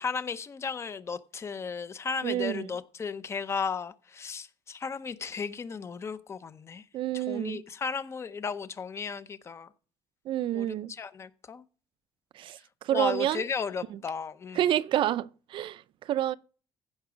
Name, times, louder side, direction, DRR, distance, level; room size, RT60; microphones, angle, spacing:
voice 1, 0.0-6.8 7.1-9.7 10.5-11.6 12.9-14.6, left 5 dB, 25° left, 0.7 m, -35 dB
voice 2, 2.2-2.7 6.9-7.6 10.3-10.9 12.3-13.4 13.9-14.0 14.5-16.4, right 12 dB, 55° right, 0.4 m, -29 dB
15.5 x 6.1 x 5.0 m
cardioid pair, 165°, 10 cm